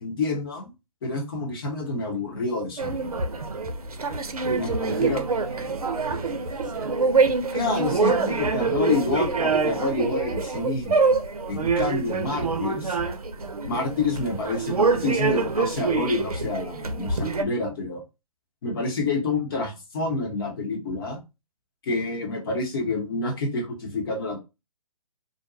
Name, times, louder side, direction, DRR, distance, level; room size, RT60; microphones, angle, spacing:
voice 1, 0.0-0.7 1.0-3.1 4.4-5.2 7.5-11.0 11.5-13.0 13.6-18.0 18.6-21.2 21.8-24.4, left 3 dB, 40° left, 0.9 m, -28 dB
sound 1, 2.8-17.4, right 4 dB, 90° right, 0.6 m, -25 dB
voice 2, 4.9-7.3, right 4 dB, 35° right, 0.7 m, -42 dB
2.5 x 2.2 x 2.5 m
figure-of-eight pair, 140°, 18 cm